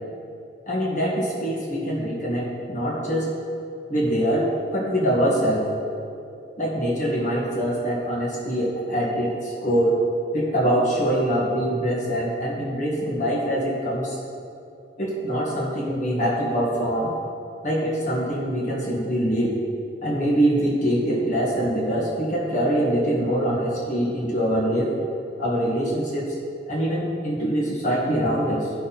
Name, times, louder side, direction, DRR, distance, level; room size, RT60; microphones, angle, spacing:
voice 1, 0.7-3.3 3.9-5.7 6.6-10.0 10.3-14.2 15.0-17.1 17.6-19.6 20.0-25.0 25.4-26.3 26.7-28.7, equal, 40° left, -5 dB, 1.8 m, -24 dB
13.0 x 5.9 x 4.2 m, 2.6 s
head